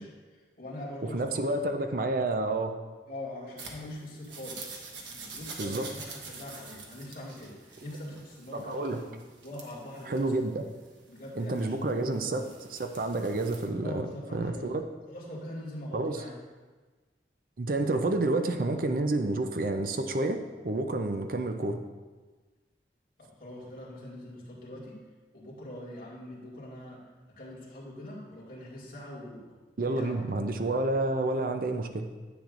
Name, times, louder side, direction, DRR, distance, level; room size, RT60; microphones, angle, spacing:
voice 1, 0.0-1.6 1.9-2.1 3.1-4.7 5.1-9.1 9.4-10.5 11.1-12.4 13.8-14.8 15.1-16.3 18.4-18.6 23.2-25.0 25.3-27.0 27.4-29.4 29.8-30.4, left 1 dB, 50° left, -6 dB, 2.2 m, -43 dB
voice 2, 1.0-2.7 5.6-5.9 8.5-9.0 10.1-10.6 11.3-12.4 12.7-14.8 15.9-16.2 17.6-20.4 20.6-21.8 29.8-32.1, right 2 dB, 50° right, 6 dB, 0.5 m, -29 dB
sound 1, 3.6-13.7, right 4 dB, 85° right, 1.2 m, -47 dB
10.0 x 7.7 x 2.5 m, 1.3 s
head